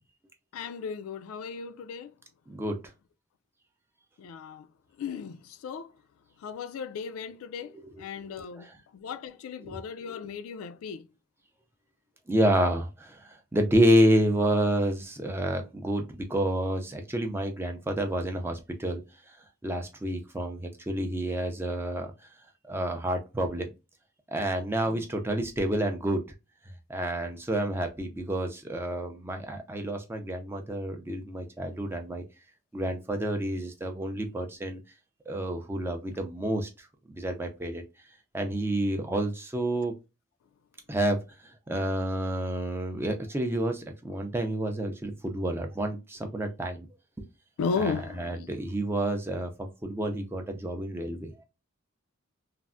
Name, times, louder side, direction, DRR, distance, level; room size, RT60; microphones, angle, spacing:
voice 1, 0.5-2.1 4.2-4.7 5.0-5.9 6.4-11.1 24.9-25.0 47.6-48.5, left 5 dB, 80° left, 0.3 m, -35 dB
voice 2, 2.5-2.8 7.8-8.0 8.6-8.7 9.6-9.8 12.3-19.0 19.3-19.4 19.6-22.3 22.6-23.7 24.3-26.2 26.9-32.2 32.7-34.8 35.3-37.8 38.3-39.9 40.9-46.9 47.8-51.4, right 1 dB, 10° right, 0.3 m, -29 dB
3.3 x 2.0 x 2.4 m
head